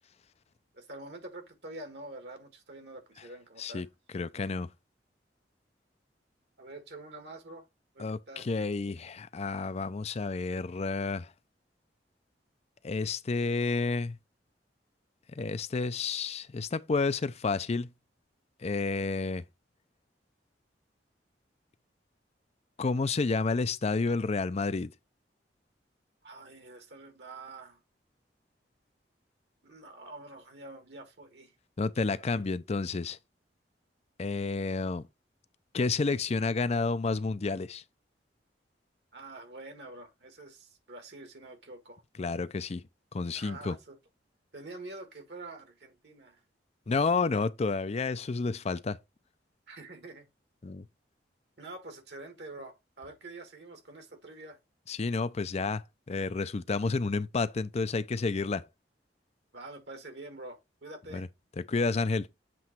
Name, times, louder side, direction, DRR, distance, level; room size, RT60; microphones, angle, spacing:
voice 1, 0.7-3.8 6.6-7.7 7.9-8.5 26.2-27.8 29.6-31.5 39.1-42.0 43.3-44.0 44.5-46.4 49.7-50.3 51.6-54.6 59.5-61.2, right 2 dB, 70° right, 1.6 m, -46 dB
voice 2, 4.1-4.7 8.0-11.3 12.8-14.2 15.4-17.9 18.6-19.4 22.8-24.9 31.8-33.2 34.2-35.0 35.7-37.8 42.2-42.8 43.1-43.8 46.9-49.0 50.6-50.8 54.9-58.7 61.1-61.3 61.6-62.3, left 4 dB, 40° left, 0.5 m, -30 dB
7.7 x 3.1 x 4.4 m
head